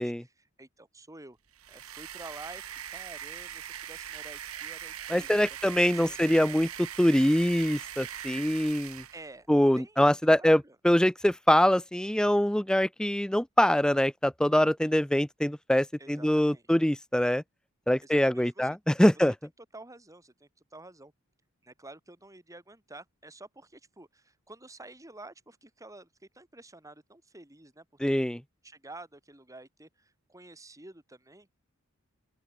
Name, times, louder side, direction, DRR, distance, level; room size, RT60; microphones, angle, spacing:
voice 1, 0.0-1.4 1.7-5.5 5.8-6.2 9.1-10.0 10.4-10.8 16.0-16.7 18.0-18.8 19.1-19.3 19.6-21.1 21.6-28.2 28.6-31.5, right 2 dB, 15° right, 4.5 m, -50 dB
sound 1, 1.5-9.3, right 10 dB, 85° right, 2.0 m, -41 dB
voice 2, 5.1-9.0 9.5-17.4 17.9-19.3 28.0-28.4, equal, 5° left, 0.5 m, -24 dB
open air
head